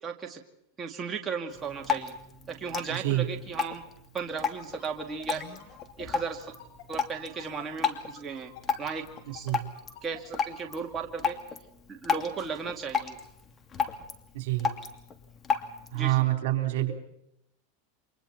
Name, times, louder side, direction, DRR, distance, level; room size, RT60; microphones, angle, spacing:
voice 1, 0.0-0.4 0.8-2.1 2.5-3.8 4.1-5.6 6.0-6.5 6.9-8.5 8.8-9.5 10.0-11.4 11.9-13.2 15.9-16.2, right 5 dB, 20° right, 1 dB, 2.5 m, -36 dB
Drip, 1.5-16.0, left 6 dB, 20° left, 2.6 m, -34 dB
voice 2, 2.9-3.3 9.4-9.7 14.3-14.8 15.9-16.9, right 16 dB, 70° right, 6 dB, 3.7 m, -27 dB
sound 1, 4.6-10.8, left 11 dB, 55° left, 7.5 m, -48 dB
29.5 x 25.0 x 4.3 m, 0.78 s
supercardioid pair, 135°, 0 cm